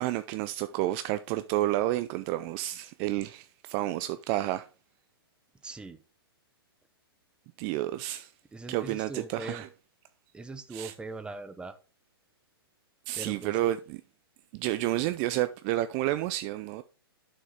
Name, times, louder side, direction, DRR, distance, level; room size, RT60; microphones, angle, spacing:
voice 1, 0.0-4.7 7.6-8.3 8.7-9.7 10.7-10.9 13.1-14.0 14.5-16.8, right 15 dB, 35° right, 0.4 m, -30 dB
voice 2, 5.6-6.0 8.5-9.6 10.3-11.8 13.1-13.6, right 3 dB, 5° right, 0.7 m, -41 dB
8.8 x 6.5 x 3.6 m
hypercardioid pair, 125°, 13 cm